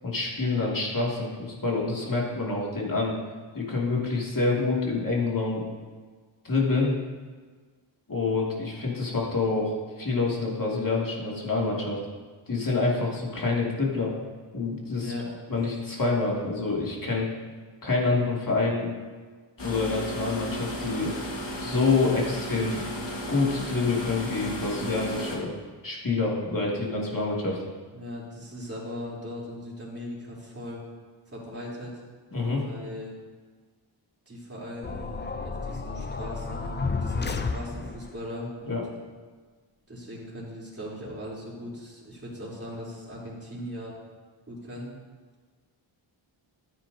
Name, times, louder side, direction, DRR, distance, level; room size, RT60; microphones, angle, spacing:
voice 1, 0.0-3.2 3.5-5.6 6.4-6.9 8.1-12.0 12.5-14.2 14.5-15.1 15.5-17.3 17.8-18.9 19.6-21.1 21.6-22.8 23.3-25.5 25.8-27.6 32.3-32.6 38.7-38.8, left 3 dB, 40° left, -3 dB, 2.4 m, -27 dB
sound 1, 19.6-25.4, equal, 60° left, 1.8 m, -34 dB
voice 2, 27.9-30.8 31.3-32.0 32.5-33.1 34.2-38.8 39.9-43.9 44.5-44.9, left 1 dB, 30° right, -7 dB, 3.4 m, -39 dB
sound 2, 34.8-38.2, left 4 dB, 25° left, 0.5 m, -32 dB
13.5 x 9.3 x 2.8 m, 1.5 s
wide cardioid pair, 105°, 49 cm